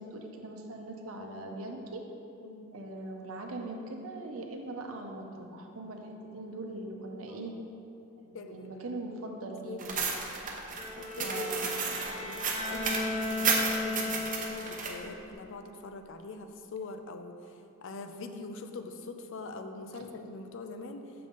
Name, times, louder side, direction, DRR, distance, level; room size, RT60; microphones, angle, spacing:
voice 1, 0.0-2.1 2.7-7.6 8.2-10.0 11.2-11.9 19.9-20.0, right 2 dB, 75° right, 2 dB, 0.7 m, -41 dB
voice 2, 2.4-2.7 7.3-7.6 8.3-8.8 9.5-10.2 11.0-17.4 17.8-21.1, left 3 dB, 65° left, 7 dB, 0.5 m, -43 dB
sound 1, 9.8-14.9, right 5 dB, 40° right, 0.7 m, -32 dB
Bowed string instrument, 10.7-14.9, left 2 dB, 25° left, 1.4 m, -35 dB
6.7 x 5.4 x 3.8 m, 2.7 s
head